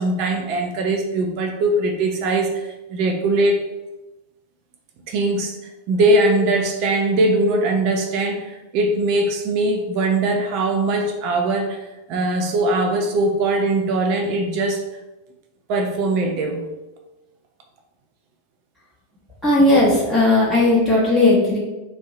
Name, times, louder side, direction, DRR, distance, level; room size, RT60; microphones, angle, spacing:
voice 1, 0.0-3.6 5.1-5.5 5.9-11.8 12.1-14.8 15.7-16.7, right 2 dB, 45° right, 4 dB, 0.5 m, -21 dB
voice 2, 19.4-21.6, left 2 dB, 5° right, -7 dB, 0.8 m, -16 dB
2.6 x 2.0 x 3.9 m, 1.0 s
figure-of-eight pair, 90°, 0 cm